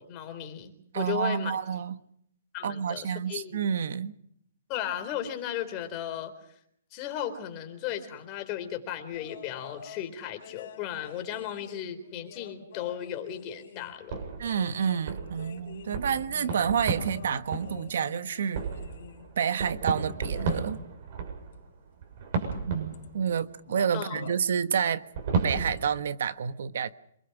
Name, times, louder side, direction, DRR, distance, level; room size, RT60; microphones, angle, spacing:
voice 1, 0.0-1.6 2.5-3.7 4.7-6.3 6.9-14.2 23.9-24.2, left 10 dB, 25° left, 3.7 m, -35 dB
voice 2, 0.9-2.0 2.6-4.1 14.4-18.6 19.4-20.8 22.7-25.0 25.4-26.9, right 7 dB, 65° right, 1.3 m, -29 dB
sound 1, 9.1-10.0 10.4-13.9 14.4-19.3 20.2-20.7 22.5-22.6 22.9-23.4 23.7-24.4 25.8-25.9, left 8 dB, 55° left, 4.3 m, -47 dB
sound 2, 13.9-17.9 18.5-23.3 25.1-25.7, right 4 dB, 45° right, 7.0 m, -33 dB
27.5 x 21.0 x 6.0 m
hypercardioid pair, 165°, 0 cm